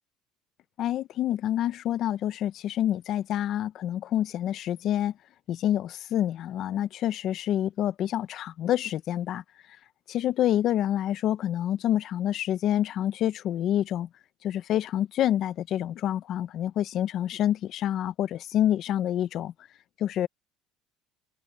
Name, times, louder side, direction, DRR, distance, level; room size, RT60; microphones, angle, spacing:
voice 1, 0.8-5.1 5.5-9.4 10.1-14.1 14.4-19.5 20.0-20.3, left 11 dB, 45° left, 0.6 m, -27 dB
cardioid pair, 150°, 0 cm